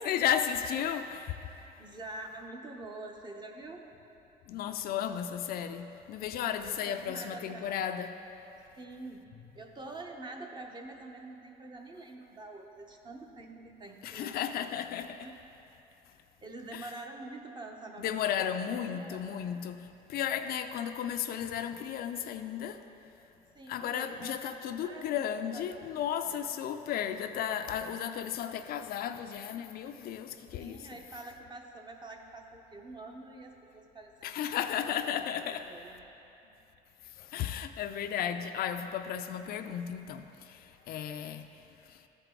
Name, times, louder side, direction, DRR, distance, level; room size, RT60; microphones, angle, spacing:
voice 1, 0.0-1.3 4.5-8.1 14.0-15.3 16.7-16.9 18.0-22.8 23.7-30.9 34.2-35.7 37.2-41.5 41.9-42.0, left 9 dB, 65° left, 0.4 m, -34 dB
voice 2, 1.8-3.8 6.6-7.8 8.8-9.3 9.5-14.7 15.2-15.3 16.4-18.5 18.8-19.3 23.5-25.9 26.2-26.6 30.6-36.1 36.4-36.5, right 2 dB, 25° right, 0.8 m, -46 dB
13.0 x 4.7 x 3.8 m
cardioid pair, 110°, 17 cm